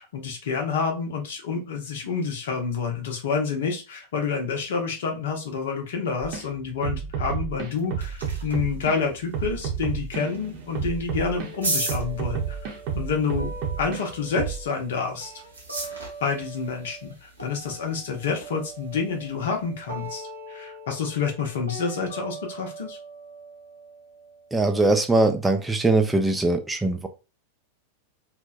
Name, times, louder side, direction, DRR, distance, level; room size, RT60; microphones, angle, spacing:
voice 1, 0.0-15.3 16.2-23.0, left 5 dB, 60° left, 3 dB, 0.7 m, -28 dB
sound 1, 6.2-6.5 6.8-9.0 9.3-11.5 11.9-14.0 14.4-14.6, right 7 dB, 45° right, 0.7 m, -30 dB
sound 2, 7.5-20.1, right 2 dB, 80° right, 0.8 m, -39 dB
sound 3, 11.1-17.1 17.4-25.2, right 2 dB, 90° left, 0.8 m, -42 dB
voice 2, 24.5-27.1, right 2 dB, 10° right, 4 dB, 0.3 m, -21 dB
2.6 x 2.1 x 2.4 m, 0.30 s
figure-of-eight pair, 90°, 0 cm